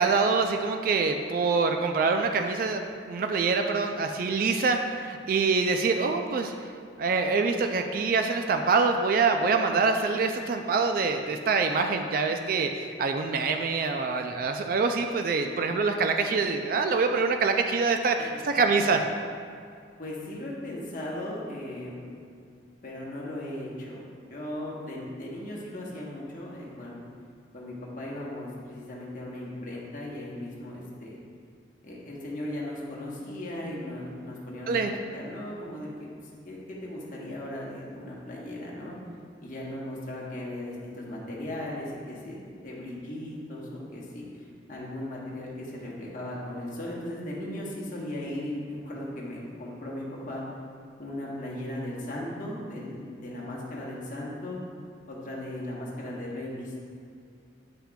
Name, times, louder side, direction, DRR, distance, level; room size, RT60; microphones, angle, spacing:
voice 1, 0.0-6.5 7.0-19.0 34.7-34.9, right 4 dB, 50° right, 5 dB, 0.3 m, -25 dB
voice 2, 17.9-18.3 20.0-22.1 22.8-24.0 24.3-27.0 27.5-31.2 31.8-34.7 35.1-36.1 36.4-38.9 39.4-50.4 51.0-54.6 55.1-56.8, left 1 dB, 45° left, -4 dB, 1.2 m, -37 dB
8.6 x 5.7 x 2.3 m, 2.3 s
head